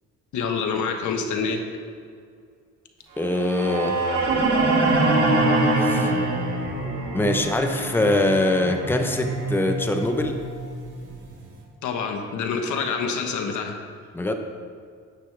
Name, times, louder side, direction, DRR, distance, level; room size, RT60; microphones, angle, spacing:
voice 1, 0.3-1.6 11.8-13.8, left 5 dB, 75° left, 4 dB, 1.3 m, -26 dB
voice 2, 3.2-4.0 5.8-6.1 7.1-10.4 14.1-14.4, left 2 dB, 5° left, 5 dB, 0.8 m, -23 dB
sound 1, 3.2-11.3, right 2 dB, 85° right, 2.2 m, -24 dB
10.5 x 9.9 x 3.4 m, 2.2 s
cardioid pair, 90°, 30 cm